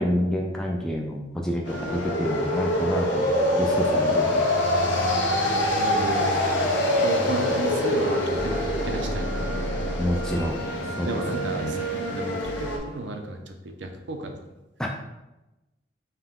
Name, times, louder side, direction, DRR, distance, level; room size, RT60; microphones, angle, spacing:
voice 1, 0.0-3.2 3.6-4.5 10.0-10.6 11.0-11.8 14.8-14.9, equal, 5° left, -1 dB, 0.3 m, -28 dB
sound 1, 1.7-12.8, left 1 dB, 75° left, 0.8 m, -25 dB
voice 2, 5.7-8.6 8.8-9.8 11.1-14.4, right 2 dB, 75° right, 4 dB, 0.6 m, -33 dB
sound 2, 6.5-13.0, left 1 dB, 50° left, 0.8 m, -37 dB
5.7 x 2.2 x 3.6 m, 0.99 s
head